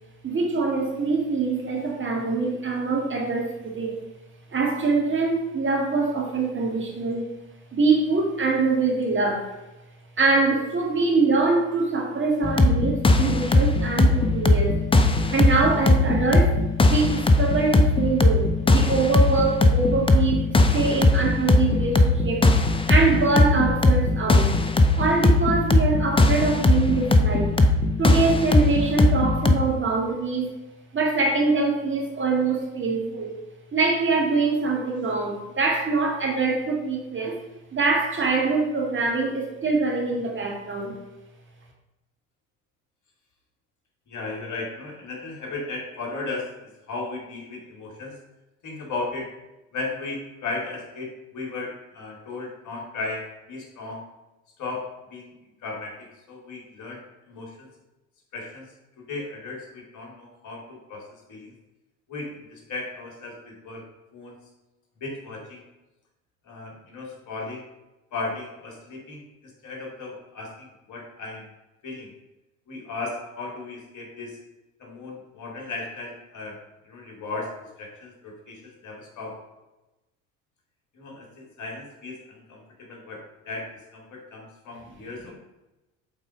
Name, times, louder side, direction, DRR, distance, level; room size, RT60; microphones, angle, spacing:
voice 1, 0.2-4.0 4.5-7.3 7.7-9.6 10.2-14.8 15.3-20.4 20.7-22.5 22.9-24.6 24.9-27.6 28.0-30.6 30.9-33.4 33.7-37.4 37.7-41.0, right 3 dB, 30° right, 0 dB, 2.0 m, -24 dB
sound 1, 12.4-29.5, left 2 dB, 15° left, 0.7 m, -19 dB
voice 2, 44.1-48.1 48.6-49.3 49.7-54.0 54.6-54.8 55.1-55.3 55.6-57.0 57.3-57.7 58.3-58.7 59.0-61.5 62.1-63.8 64.1-64.4 65.0-65.6 66.4-67.6 68.1-71.5 71.8-72.1 72.7-74.4 74.8-76.6 76.8-77.5 77.8-79.4 80.9-85.3, left 3 dB, 45° left, 0 dB, 2.7 m, -36 dB
7.4 x 4.1 x 5.1 m, 0.99 s
hypercardioid pair, 65°, 40 cm